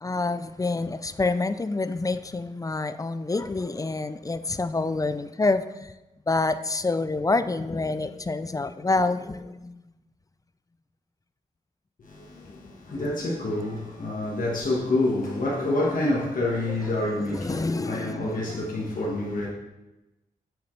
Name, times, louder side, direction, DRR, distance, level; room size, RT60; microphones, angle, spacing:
voice 1, 0.0-5.9 6.3-9.8 12.9-13.1 16.9-18.7, left 3 dB, 25° left, 0.4 m, -27 dB
voice 2, 12.0-19.5, left 2 dB, 65° left, 1.6 m, -27 dB
7.9 x 6.9 x 3.4 m
cardioid pair, 65°, 15 cm